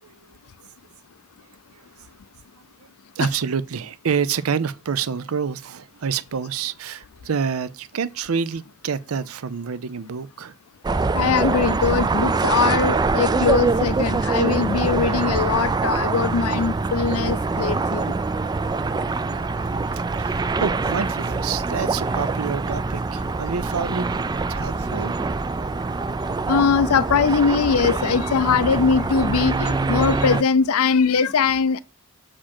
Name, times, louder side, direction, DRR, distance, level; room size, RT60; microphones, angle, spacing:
voice 1, 0.0-0.4 1.7-2.1 2.8-2.9 3.2-10.5 19.3-24.1 24.5-25.1, right 6 dB, 75° right, 0.5 m, -28 dB
sound 1, 10.8-30.4, right 3 dB, 20° right, 0.3 m, -24 dB
voice 2, 11.1-18.1 26.5-31.8, left 5 dB, 80° left, 0.5 m, -21 dB
7.2 x 5.0 x 4.3 m
head